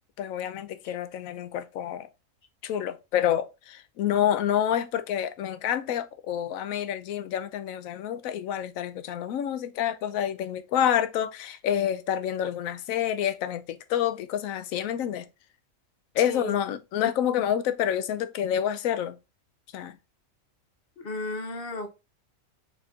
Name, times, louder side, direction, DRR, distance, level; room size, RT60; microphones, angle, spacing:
voice 1, 0.2-2.1 2.6-15.2 16.2-19.2 19.7-19.9, left 10 dB, 75° left, 1.0 m, -28 dB
voice 2, 16.2-16.6 17.0-17.1 21.0-21.9, left 2 dB, 50° left, 0.8 m, -34 dB
4.3 x 4.2 x 2.4 m
omnidirectional pair, 1.4 m